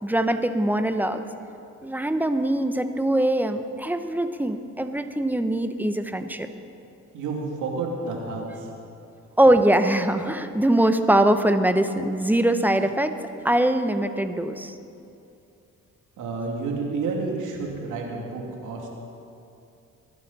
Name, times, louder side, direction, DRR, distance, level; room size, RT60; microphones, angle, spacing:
voice 1, 0.0-1.2 1.8-6.5 9.4-13.2 13.4-14.7, right 1 dB, 5° right, 8 dB, 0.8 m, -22 dB
voice 2, 7.1-8.7 16.2-18.9, right 3 dB, 85° right, -1 dB, 2.8 m, -30 dB
22.0 x 11.5 x 4.2 m, 2.6 s
cardioid pair, 90°, 30 cm